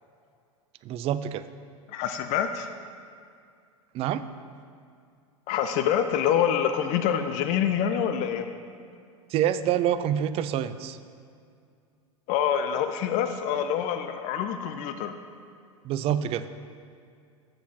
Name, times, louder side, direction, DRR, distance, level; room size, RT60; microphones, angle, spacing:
voice 1, 0.8-1.5 3.9-4.3 9.3-11.0 15.8-16.5, right 10 dB, 35° right, 13 dB, 0.4 m, -26 dB
voice 2, 1.9-2.7 5.5-8.4 12.3-15.1, left 9 dB, 45° left, 8 dB, 0.5 m, -26 dB
7.0 x 6.1 x 6.0 m, 2.3 s
figure-of-eight pair, 85°, 17 cm